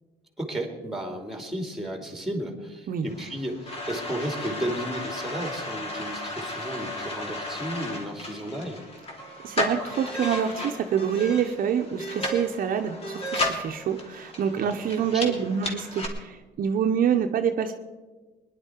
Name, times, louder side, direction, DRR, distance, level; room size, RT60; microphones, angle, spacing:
voice 1, 0.4-8.8 14.5-14.7 15.0-15.4, right 1 dB, ahead, 4 dB, 2.7 m, -33 dB
sound 1, 3.1-16.1, left 1 dB, 35° left, 2.9 m, -34 dB
voice 2, 9.4-17.7, right 8 dB, 55° right, 5 dB, 1.0 m, -26 dB
21.0 x 11.0 x 4.6 m, 1.3 s
cardioid pair, 110°, 17 cm